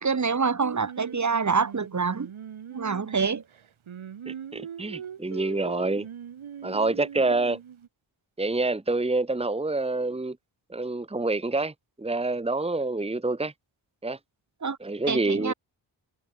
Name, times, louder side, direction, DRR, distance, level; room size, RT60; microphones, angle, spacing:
voice 1, 0.0-2.3 2.7-3.4 14.6-14.8 15.1-15.5, right 5 dB, 35° right, 1.7 m, -26 dB
Singing, 0.6-7.9, right 8 dB, 80° right, 5.1 m, -40 dB
voice 2, 4.3-6.1 6.6-7.6 8.4-10.4 10.7-11.7 12.0-13.5 14.0-14.2 14.8-15.5, right 2 dB, 10° right, 1.4 m, -27 dB
cardioid pair, 60°, 47 cm